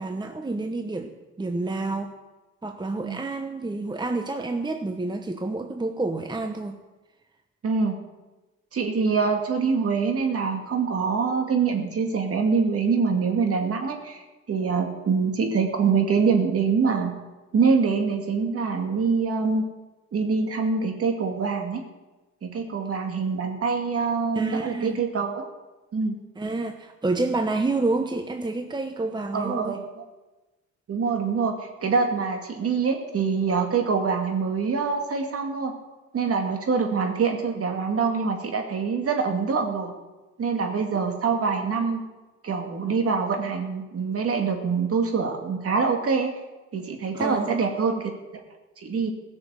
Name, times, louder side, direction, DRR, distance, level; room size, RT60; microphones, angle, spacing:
voice 1, 0.0-2.2 2.6-6.8 24.3-25.0 26.4-29.8 47.1-47.6, right 2 dB, 15° right, 6 dB, 0.9 m, -29 dB
voice 2, 7.6-8.0 8.7-14.2 14.5-17.1 17.5-19.6 20.1-21.8 22.4-25.5 25.9-26.2 29.3-29.8 30.9-31.6 31.8-35.7 36.1-39.9 40.4-42.0 42.4-46.3 46.7-48.1 48.8-49.1, right 5 dB, 50° right, 4 dB, 2.3 m, -24 dB
16.5 x 6.7 x 7.6 m, 1.1 s
cardioid pair, 90°, 30 cm